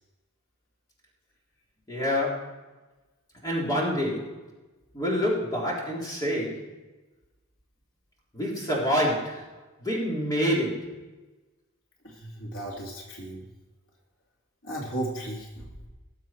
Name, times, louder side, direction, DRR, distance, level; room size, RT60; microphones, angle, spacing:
voice 1, 1.9-2.6 3.4-4.4 4.9-6.8 8.3-11.0, equal, 15° left, -5 dB, 3.9 m, -27 dB
voice 2, 12.0-13.5 14.6-15.7, right 1 dB, 80° left, -2 dB, 2.8 m, -35 dB
20.0 x 7.5 x 4.6 m, 1.1 s
head